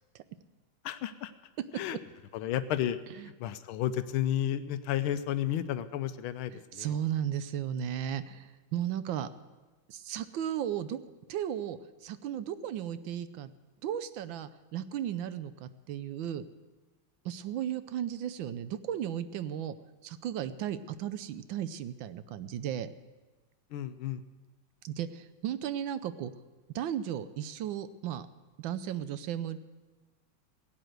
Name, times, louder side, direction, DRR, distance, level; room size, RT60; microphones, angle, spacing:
voice 1, 0.8-1.3 1.7-2.0 2.3-3.0 3.2-6.9 23.7-24.2, left 11 dB, 85° left, 11 dB, 1.5 m, -32 dB
voice 2, 6.5-9.3 9.9-11.0 11.3-13.5 13.8-16.5 17.2-19.8 20.0-22.9 24.8-26.3 26.7-28.3 28.6-29.6, right 10 dB, 75° right, 13 dB, 1.4 m, -35 dB
16.5 x 9.0 x 7.9 m, 1.3 s
omnidirectional pair, 2.2 m